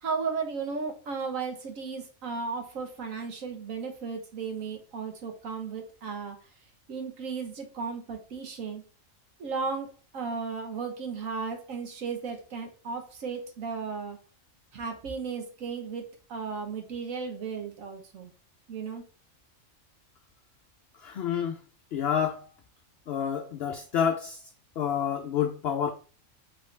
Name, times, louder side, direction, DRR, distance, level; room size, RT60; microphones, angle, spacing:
voice 1, 0.0-6.4 6.9-8.8 9.4-14.2 14.7-18.3 18.7-19.0, right 5 dB, 80° right, 1.4 m, -35 dB
voice 2, 21.0-21.6 21.9-22.5 23.1-24.4 24.8-25.9, left 8 dB, 65° left, 0.7 m, -28 dB
5.2 x 3.2 x 3.2 m
omnidirectional pair, 1.4 m